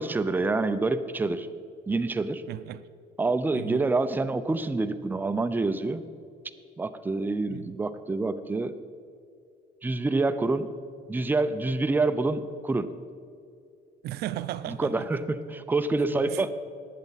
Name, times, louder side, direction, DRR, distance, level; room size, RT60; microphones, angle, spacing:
voice 1, 0.0-1.5 1.9-2.4 3.2-6.1 6.8-8.8 9.8-10.7 11.1-12.9 14.7-16.5, right 3 dB, 10° right, 0.5 m, -27 dB
voice 2, 2.5-2.8 3.5-3.9 7.5-7.7 14.0-15.2 16.1-16.5, right 13 dB, 75° right, 0.5 m, -36 dB
18.5 x 7.9 x 4.0 m
cardioid pair, 110°, 17 cm